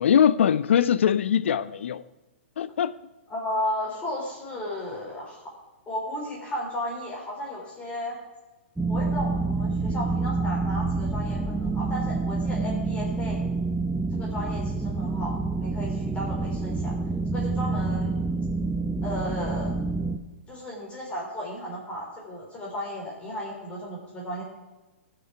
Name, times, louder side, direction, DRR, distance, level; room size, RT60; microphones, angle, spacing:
voice 1, 0.0-2.0 2.6-2.9, left 8 dB, 70° left, 0.5 m, -21 dB
voice 2, 3.3-5.4 5.9-8.2 8.9-13.4 14.1-17.0 17.3-18.2 19.0-19.7 20.5-24.4, left 1 dB, 20° left, 3.9 m, -34 dB
sound 1, 8.8-20.2, right 3 dB, 5° right, 0.7 m, -28 dB
17.5 x 6.4 x 4.6 m
hypercardioid pair, 125°, 7 cm